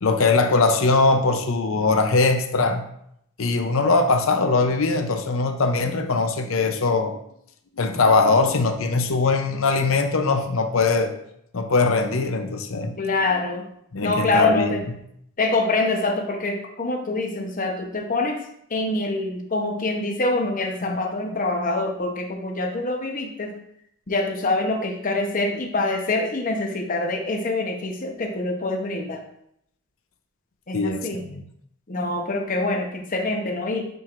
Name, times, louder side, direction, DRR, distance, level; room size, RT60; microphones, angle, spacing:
voice 1, 0.0-2.8 3.4-7.2 7.8-11.1 11.5-13.0 13.3-13.4 13.9-14.8 20.8-21.0 30.7-31.4, left 3 dB, 65° left, 7 dB, 0.6 m, -21 dB
voice 2, 13.0-13.6 14.0-14.8 15.4-18.4 18.7-23.5 24.1-29.2 30.7-31.2 31.9-33.9, left 2 dB, 35° left, 2 dB, 0.9 m, -25 dB
9.2 x 4.5 x 2.5 m, 0.73 s
head